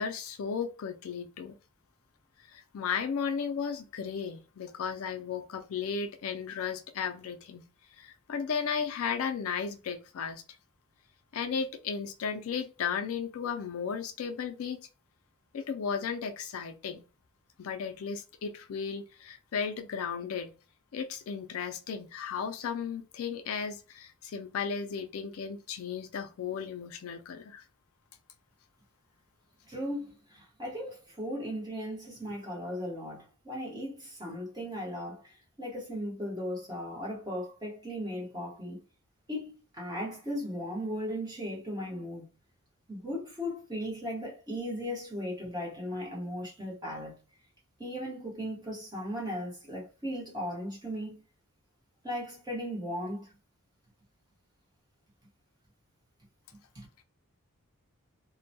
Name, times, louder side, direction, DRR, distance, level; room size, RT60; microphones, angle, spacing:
voice 1, 0.0-1.5 2.5-7.6 8.0-10.4 11.3-14.8 15.5-17.0 17.6-20.5 20.9-27.6, left 6 dB, 70° left, 0.4 m, -35 dB
voice 2, 29.7-38.8 39.3-42.3 42.9-47.2 47.8-51.2 52.0-53.3 56.7-56.9, equal, 15° right, 0.9 m, -37 dB
2.2 x 2.1 x 2.6 m
head